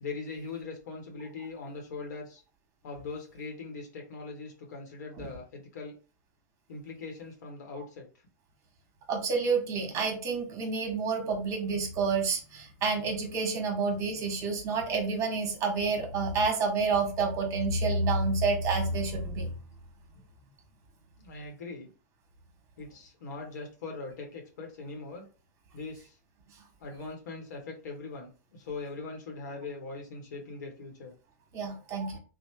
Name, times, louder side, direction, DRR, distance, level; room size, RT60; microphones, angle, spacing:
voice 1, 0.0-2.4 2.8-6.0 6.7-8.1 21.2-21.9 22.8-25.3 25.7-26.2 26.8-31.1, left 3 dB, 75° left, 2 dB, 0.9 m, -41 dB
voice 2, 9.1-19.5 31.5-32.2, right 4 dB, 35° right, 3 dB, 1.1 m, -29 dB
3.0 x 2.1 x 3.1 m, 0.35 s
hypercardioid pair, 125°, 10 cm